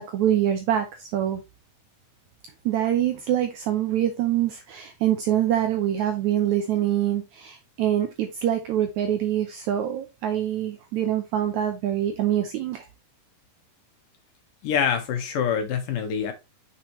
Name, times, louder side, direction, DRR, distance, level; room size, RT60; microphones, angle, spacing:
voice 1, 0.1-1.4 2.6-12.9, right 11 dB, 80° right, 1.6 m, -25 dB
voice 2, 14.6-16.3, left 7 dB, 70° left, 2.8 m, -25 dB
6.8 x 5.9 x 3.1 m
omnidirectional pair, 4.3 m